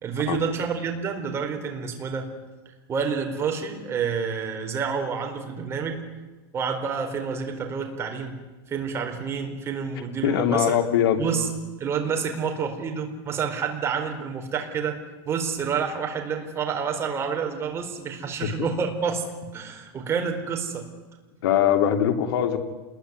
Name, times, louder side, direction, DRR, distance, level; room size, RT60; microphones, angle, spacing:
voice 1, 0.0-2.3 2.9-6.0 6.5-8.4 8.7-10.8 11.2-11.5 11.8-15.0 15.2-19.2 19.5-20.9, right 6 dB, 20° right, 3 dB, 4.3 m, -28 dB
voice 2, 10.2-11.2 18.4-18.5 21.4-22.6, left 9 dB, 70° left, 5 dB, 3.4 m, -21 dB
28.0 x 21.5 x 9.7 m, 1.2 s
supercardioid pair, 165°, 13 cm